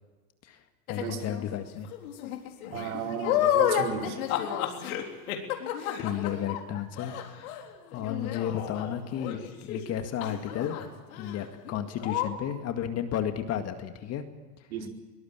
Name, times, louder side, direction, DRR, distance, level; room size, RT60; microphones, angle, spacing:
sound 1, 0.9-1.4 1.9-9.9 10.2-10.9 11.1-11.4 11.7-11.8 12.0-12.3, left 10 dB, 60° left, 3.9 m, -31 dB
voice 1, 0.9-1.9 6.0-10.8 11.2-14.2, left 9 dB, 30° left, 7 dB, 1.9 m, -33 dB
voice 2, 2.7-4.2 14.7-14.9, right 8 dB, 60° right, 2 dB, 4.8 m, -34 dB
23.0 x 20.0 x 8.8 m, 1.3 s
hypercardioid pair, 115°, 48 cm